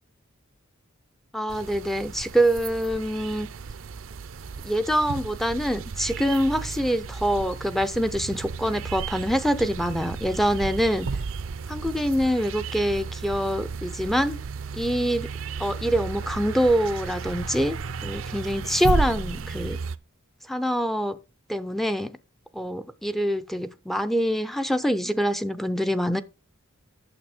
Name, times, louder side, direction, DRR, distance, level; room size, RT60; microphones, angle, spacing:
voice 1, 1.3-3.5 4.6-11.1 11.7-14.4 14.7-15.3 15.6-19.8 20.5-21.2 21.5-22.2 22.5-26.2, equal, ahead, 0.5 m, -25 dB
sound 1, 1.5-20.0, right 4 dB, 70° right, 0.5 m, -34 dB
8.9 x 6.9 x 4.9 m
head